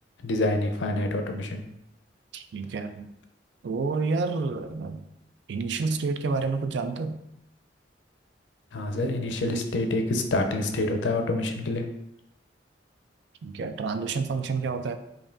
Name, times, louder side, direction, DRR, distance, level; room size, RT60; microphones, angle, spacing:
voice 1, 0.2-1.6 8.7-11.9, left 2 dB, 85° left, 5 dB, 0.5 m, -27 dB
voice 2, 2.3-3.1 3.6-5.0 5.5-7.2 13.4-15.0, right 4 dB, 70° right, 8 dB, 0.4 m, -29 dB
5.1 x 2.6 x 2.5 m, 0.83 s
head